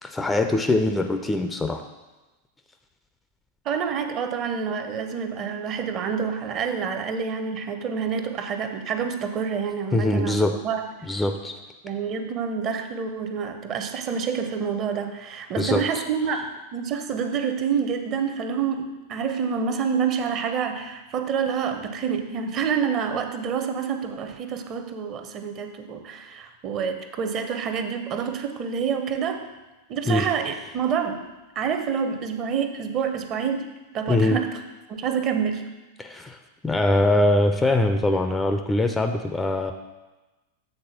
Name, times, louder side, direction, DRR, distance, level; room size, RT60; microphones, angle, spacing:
voice 1, 0.0-1.8 9.9-10.6 11.0-11.6 15.6-15.8 30.1-30.3 34.1-34.4 36.0-36.4 36.6-39.7, left 1 dB, 10° left, 7 dB, 0.5 m, -22 dB
voice 2, 3.6-10.9 11.8-29.5 29.9-31.2 31.6-33.7 33.9-34.6 34.9-35.6, right 6 dB, 35° right, 7 dB, 0.8 m, -27 dB
7.5 x 3.9 x 6.4 m, 1.1 s
figure-of-eight pair, 90°, 0 cm